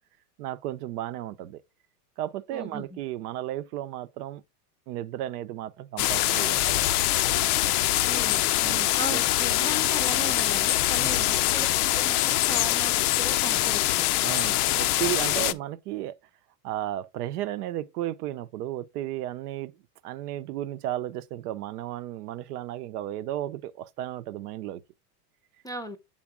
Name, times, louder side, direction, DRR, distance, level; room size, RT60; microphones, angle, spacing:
voice 1, 0.4-1.6 2.2-4.4 4.9-6.8 8.6-9.2 11.0-11.4 14.2-16.2 16.6-19.7 20.0-24.8, right 13 dB, 70° right, 0.7 m, -34 dB
voice 2, 2.5-3.0 8.1-8.4 8.9-11.7 11.9-14.1 15.4-15.6 25.6-26.0, equal, 10° left, 0.6 m, -37 dB
sound 1, 6.0-15.5, left 15 dB, 70° left, 0.6 m, -24 dB
7.3 x 4.0 x 3.6 m
hypercardioid pair, 110°, 48 cm